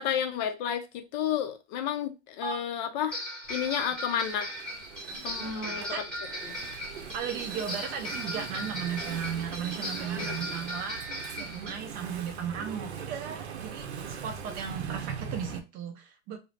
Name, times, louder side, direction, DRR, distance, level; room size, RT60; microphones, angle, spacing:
voice 1, 0.0-3.2 3.5-4.5 5.2-5.9 6.4-6.5 10.2-10.4, left 9 dB, 45° left, 8 dB, 0.5 m, -31 dB
sound 1, 2.4-2.5 3.1-11.7, equal, 5° left, 1.1 m, -37 dB
Engine / Mechanisms, 3.4-15.6, right 7 dB, 75° right, 0.6 m, -41 dB
voice 2, 5.4-6.0 7.1-11.0 11.3-16.4, right 7 dB, 30° right, 5 dB, 0.4 m, -36 dB
2.3 x 2.0 x 3.1 m, 0.27 s
hypercardioid pair, 105°, 33 cm